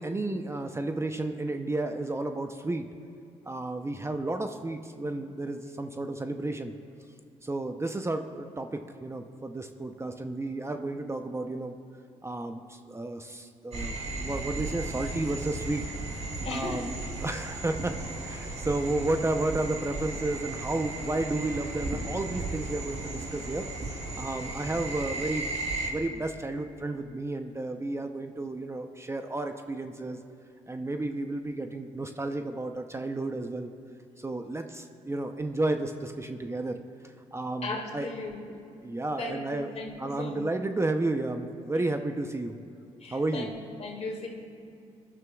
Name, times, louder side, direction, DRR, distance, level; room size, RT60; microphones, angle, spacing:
voice 1, 0.0-2.9 3.5-6.7 7.4-11.7 12.2-15.8 16.5-16.9 17.2-18.0 18.2-23.7 24.2-30.2 30.7-33.7 34.2-36.8 37.3-38.1 38.8-39.7 40.0-42.6 43.1-43.5, right 2 dB, 20° right, 6 dB, 0.7 m, -32 dB
sound 1, 13.7-25.9, right 2 dB, 55° right, 3.2 m, -35 dB
voice 2, 16.4-16.9 37.6-38.6 39.2-40.4 43.0-44.3, left 2 dB, 50° left, 0 dB, 2.5 m, -37 dB
23.0 x 11.0 x 2.4 m, 2.4 s
supercardioid pair, 60°, 14 cm